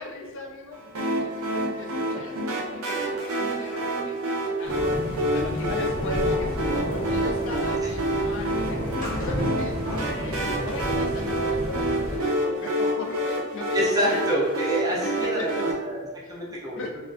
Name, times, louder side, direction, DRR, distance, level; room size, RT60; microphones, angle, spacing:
voice 1, 0.0-4.9 5.3-8.8 9.2-13.8 14.0-14.2 14.9-15.1 15.4-15.5 16.3-16.4 16.7-17.0, left 1 dB, 60° left, 2 dB, 0.4 m, -37 dB
sound 1, 0.9-15.7, right 1 dB, 70° right, 0.5 m, -28 dB
sound 2, 4.6-12.2, equal, 90° left, 0.8 m, -32 dB
sound 3, 8.9-11.3 11.6-13.2 13.5-13.6 13.9-14.0, equal, 35° left, 0.8 m, -40 dB
voice 2, 13.7-15.5 15.8-16.8, right 1 dB, 15° right, -4 dB, 0.5 m, -27 dB
2.3 x 2.2 x 2.4 m, 1.3 s
head